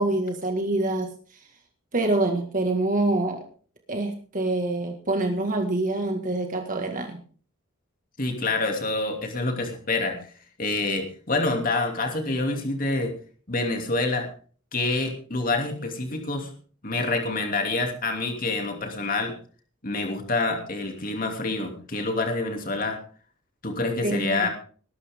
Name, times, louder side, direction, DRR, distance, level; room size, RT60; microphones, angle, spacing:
voice 1, 0.0-1.4 1.9-3.4 3.9-7.2 24.0-24.4, right 2 dB, 40° right, 3 dB, 1.9 m, -26 dB
voice 2, 8.2-10.3 10.6-13.1 13.5-14.3 14.7-16.5 16.8-19.3 19.8-23.0 23.6-24.5, left 2 dB, 40° left, 4 dB, 2.8 m, -27 dB
20.0 x 12.0 x 3.7 m, 0.42 s
head